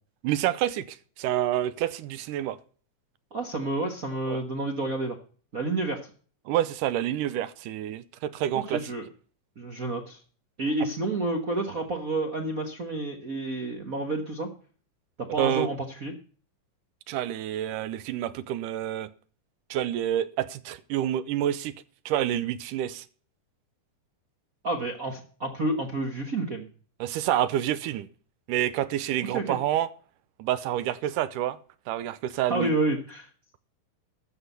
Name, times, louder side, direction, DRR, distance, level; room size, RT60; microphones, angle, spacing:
voice 1, 0.2-2.6 4.3-4.4 6.5-8.9 15.4-15.7 17.1-19.1 19.7-21.7 22.1-23.1 27.0-28.1 28.5-29.9 30.4-31.6 31.9-32.7, right 12 dB, 85° right, 2.3 m, -28 dB
voice 2, 3.3-5.2 5.5-6.0 8.5-9.1 9.6-10.2 10.6-14.5 15.2-16.1 24.6-26.7 29.3-29.6 32.5-33.3, right 2 dB, 55° right, 0.9 m, -29 dB
13.5 x 6.0 x 8.1 m
omnidirectional pair, 3.7 m